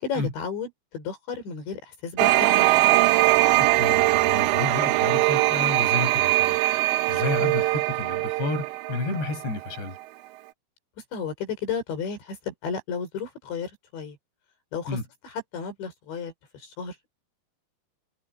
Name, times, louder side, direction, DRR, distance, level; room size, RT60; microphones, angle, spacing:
voice 1, 0.0-2.7 7.4-7.6 11.1-14.2 14.7-15.0 15.2-16.9, left 6 dB, 85° left, 7.6 m, -33 dB
sound 1, 2.2-9.8, right 18 dB, 85° right, 3.1 m, -21 dB
voice 2, 3.6-6.6 7.1-10.0 14.9-15.0, left 3 dB, 70° left, 9.0 m, -31 dB
omnidirectional pair, 5.0 m